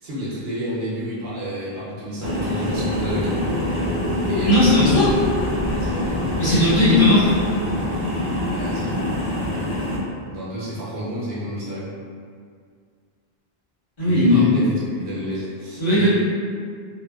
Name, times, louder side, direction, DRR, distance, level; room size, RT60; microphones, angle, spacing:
voice 1, 0.0-3.7 4.3-4.9 5.7-6.4 8.5-9.2 10.3-11.9 14.0-16.1, equal, 75° right, -8 dB, 0.9 m, -30 dB
sound 1, 2.2-10.0, left 1 dB, 15° right, 0.9 m, -25 dB
voice 2, 4.5-5.1 6.4-7.3 14.0-14.4 15.8-16.1, left 1 dB, 55° left, -12 dB, 1.3 m, -16 dB
2.6 x 2.2 x 2.2 m, 2.1 s
omnidirectional pair, 1.0 m